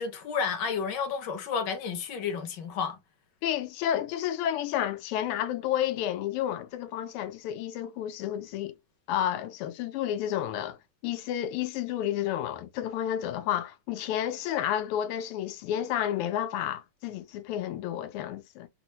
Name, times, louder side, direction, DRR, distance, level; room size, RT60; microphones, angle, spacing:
voice 1, 0.0-3.0, left 6 dB, 70° left, 1.1 m, -31 dB
voice 2, 3.4-8.7 9.1-10.8 11.0-18.7, left 11 dB, 90° left, 1.5 m, -31 dB
4.2 x 2.0 x 2.8 m
omnidirectional pair, 2.4 m